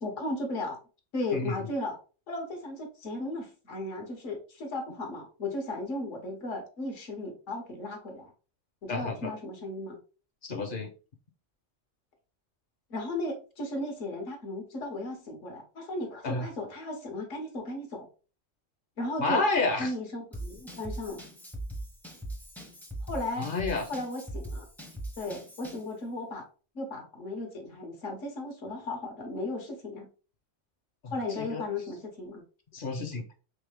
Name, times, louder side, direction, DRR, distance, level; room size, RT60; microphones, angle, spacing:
voice 1, 0.0-0.8 1.1-2.0 2.3-8.3 8.8-10.0 12.9-18.1 19.0-19.5 19.8-21.2 23.0-23.5 23.9-24.6 25.2-26.5 26.7-30.1 31.1-32.4, left 2 dB, 80° left, 3 dB, 1.5 m, -35 dB
voice 2, 1.3-1.7 8.9-9.3 10.4-10.9 16.2-16.5 19.2-19.9 23.4-23.9 31.0-31.6 32.7-33.2, left 3 dB, 55° left, 6 dB, 0.7 m, -30 dB
Drum kit / Drum, 20.3-25.9, right 1 dB, ahead, 0.4 m, -40 dB
3.5 x 3.2 x 3.3 m, 0.36 s
omnidirectional pair, 1.3 m